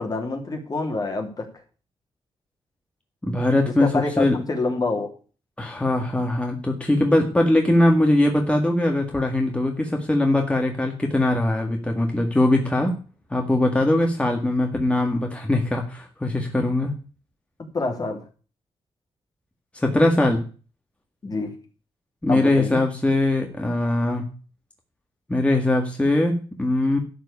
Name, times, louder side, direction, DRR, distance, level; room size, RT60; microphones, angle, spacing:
voice 1, 0.0-1.5 3.6-5.1 17.7-18.2 21.2-21.5 22.3-22.8, left 3 dB, 40° left, 2 dB, 2.9 m, -27 dB
voice 2, 3.2-4.4 5.6-12.9 13.3-17.0 19.7-20.4 22.2-24.3 25.3-27.0, left 1 dB, 10° left, 2 dB, 1.8 m, -21 dB
12.5 x 4.8 x 8.5 m, 0.37 s
wide cardioid pair, 110°, 10 cm